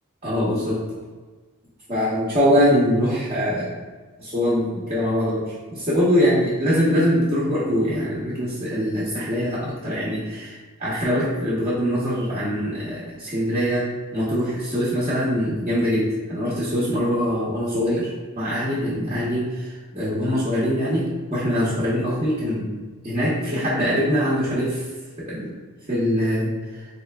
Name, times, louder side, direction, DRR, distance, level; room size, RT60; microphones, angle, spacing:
voice 1, 0.2-0.8 1.9-3.7 4.2-5.4 5.7-22.7 23.0-24.8 25.2-25.5 25.9-26.8, equal, 30° right, -9 dB, 0.7 m, -23 dB
4.1 x 2.8 x 2.2 m, 1.3 s
head